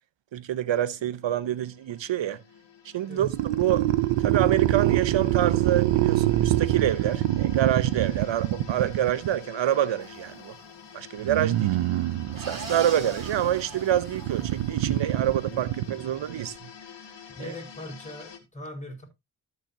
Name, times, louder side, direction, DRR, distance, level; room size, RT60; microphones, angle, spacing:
voice 1, 0.3-2.4 2.8-3.8 4.2-10.5 10.9-11.8 12.3-16.6 17.4-17.5, right 11 dB, 65° right, 1.0 m, -27 dB
sound 1, 0.7-18.4, left 7 dB, 60° left, 1.8 m, -48 dB
sound 2, 3.2-9.4 11.2-16.5, right 14 dB, 90° right, 0.7 m, -26 dB
sound 3, 10.0-10.7 12.3-14.9, right 2 dB, 40° right, 4.3 m, -41 dB
voice 2, 17.4-19.0, left 1 dB, 15° left, 5.3 m, -40 dB
13.0 x 6.6 x 2.8 m
supercardioid pair, 40°, 49 cm